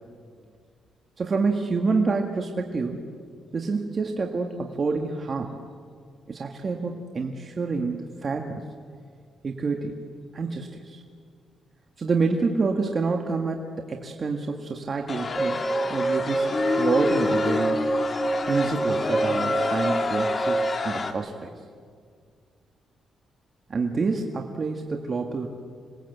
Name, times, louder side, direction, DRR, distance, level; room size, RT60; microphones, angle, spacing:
voice 1, 1.2-3.1 3.5-5.5 6.3-8.6 9.4-10.0 10.3-11.0 12.0-16.5 16.8-17.8 18.4-21.5 23.7-25.5, right 4 dB, 40° right, 3 dB, 1.7 m, -27 dB
sound 1, 15.1-21.1, left 4 dB, 35° left, 2.1 m, -28 dB
sound 2, 15.4-20.8, right 2 dB, 20° right, 0.7 m, -27 dB
27.0 x 20.5 x 8.1 m, 2.1 s
cardioid pair, 105°, 0 cm